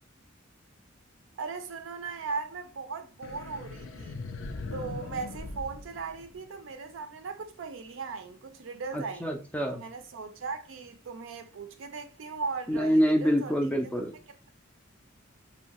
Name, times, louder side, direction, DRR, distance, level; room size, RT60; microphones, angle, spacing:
voice 1, 1.4-4.2 4.7-9.3 9.7-13.5, right 4 dB, 70° right, 0.4 m, -38 dB
sound 1, 3.2-6.7, left 3 dB, 75° left, 0.4 m, -40 dB
voice 2, 8.9-9.8 12.7-14.1, equal, 5° left, 0.3 m, -26 dB
2.7 x 2.1 x 2.9 m
head